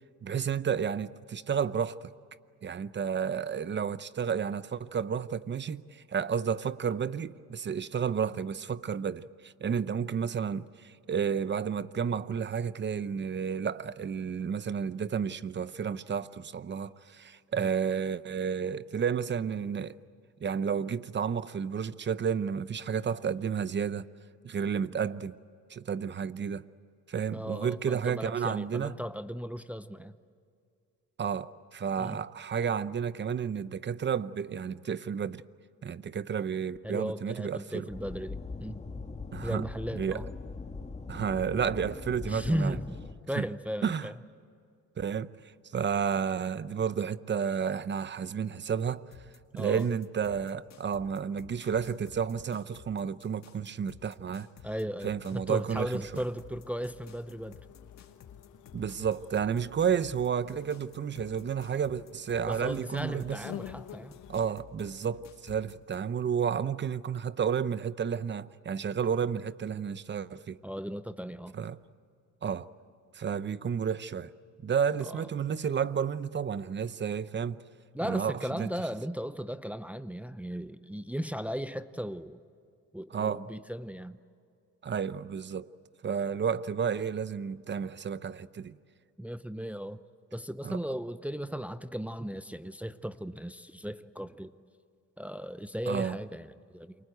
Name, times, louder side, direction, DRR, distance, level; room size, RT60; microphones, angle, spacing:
voice 1, 0.2-2.1 2.6-20.0 20.4-24.1 24.4-25.3 25.7-26.6 27.1-28.9 31.2-35.4 35.8-37.9 39.3-39.6 39.9-40.2 41.1-42.8 43.4-43.5 43.8-44.1 45.0-45.3 45.7-49.1 49.5-54.5 55.0-56.2 58.7-63.4 64.3-70.6 71.5-71.8 72.4-72.7 73.1-74.3 74.6-77.6 78.0-78.7 83.1-83.4 84.8-85.7 86.0-88.8 90.6-90.8 95.9-96.2, right 7 dB, 35° right, 0.8 m, -31 dB
voice 2, 27.3-30.1 32.0-32.2 36.8-38.8 39.4-40.3 42.3-43.0 43.3-44.1 49.5-49.9 54.6-57.6 62.5-64.2 70.6-71.5 75.0-75.2 77.9-82.4 82.9-84.2 89.2-90.0 90.3-94.5 95.2-96.9, equal, 5° right, 0.7 m, -36 dB
sound 1, 37.9-43.1, left 4 dB, 20° left, 2.0 m, -41 dB
sound 2, 49.1-66.0, left 8 dB, 60° left, 2.1 m, -53 dB
sound 3, 56.0-64.5, left 12 dB, 80° left, 1.2 m, -50 dB
28.5 x 24.0 x 8.0 m
cardioid pair, 90°, 30 cm